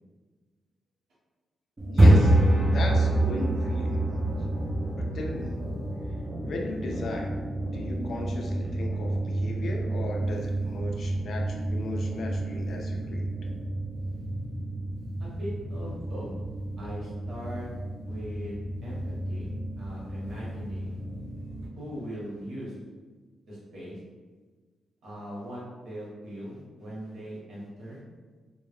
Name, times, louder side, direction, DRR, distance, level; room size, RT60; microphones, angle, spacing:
sound 1, 1.8-21.7, right 1 dB, 20° right, 0.4 m, -28 dB
voice 1, 1.9-2.4 2.7-4.3 4.9-5.7 6.4-7.4 7.7-13.3, left 2 dB, 50° left, 1 dB, 0.3 m, -36 dB
voice 2, 15.2-16.3 16.8-17.7 18.0-21.0 21.7-22.7 23.5-24.0 25.0-28.0, equal, 70° right, -6 dB, 0.8 m, -40 dB
2.2 x 2.1 x 3.1 m, 1.4 s
wide cardioid pair, 180°, 0 cm